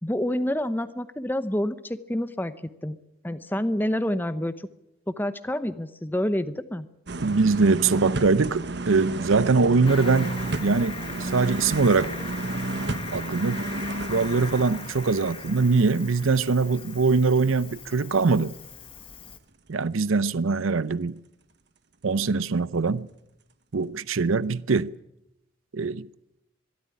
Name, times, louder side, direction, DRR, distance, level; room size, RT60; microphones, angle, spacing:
voice 1, 0.0-3.0 3.2-4.5 5.1-6.9, left 1 dB, 10° left, 0.8 m, -28 dB
sound 1, 7.1-16.9 17.2-17.3, right 2 dB, 55° right, 1.2 m, -32 dB
voice 2, 7.2-12.1 13.1-13.7 14.1-18.6 19.7-21.2 22.0-23.1 23.7-24.9 25.7-26.1, right 4 dB, 80° right, 0.7 m, -22 dB
Cricket, 9.8-19.4, left 5 dB, 25° left, 1.4 m, -40 dB
23.0 x 13.0 x 9.9 m
head